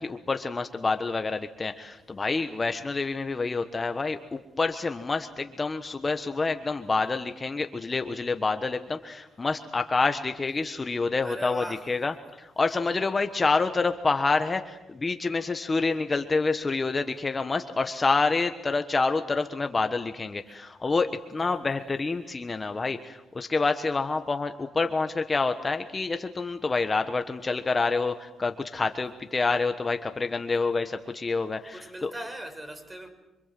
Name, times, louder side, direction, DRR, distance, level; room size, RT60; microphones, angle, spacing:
voice 1, 0.0-32.1, left 3 dB, 25° left, 1.3 m, -27 dB
voice 2, 11.2-11.9 21.3-22.0 31.7-33.1, right 1 dB, 20° right, 6.3 m, -40 dB
27.5 x 25.0 x 7.7 m
cardioid pair, 90°, 0 cm